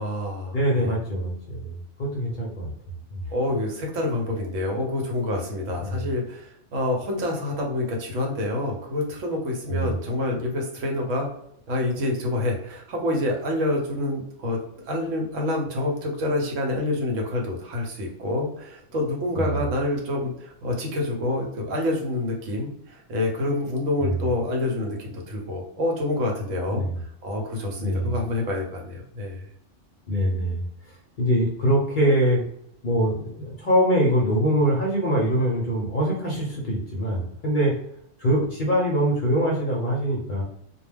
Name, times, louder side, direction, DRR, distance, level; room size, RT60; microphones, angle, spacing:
voice 1, 0.0-1.0 3.3-11.3 11.7-14.6 14.9-29.5, left 1 dB, 80° right, 1 dB, 1.0 m, -27 dB
voice 2, 0.5-1.7 2.0-2.7 3.1-3.2 5.8-6.0 9.7-9.9 19.4-19.5 26.7-26.9 27.8-28.1 30.1-30.6 31.2-32.4 32.8-37.7 38.2-40.4, equal, 50° left, -2 dB, 0.6 m, -23 dB
2.2 x 2.2 x 3.3 m, 0.72 s
omnidirectional pair, 1.3 m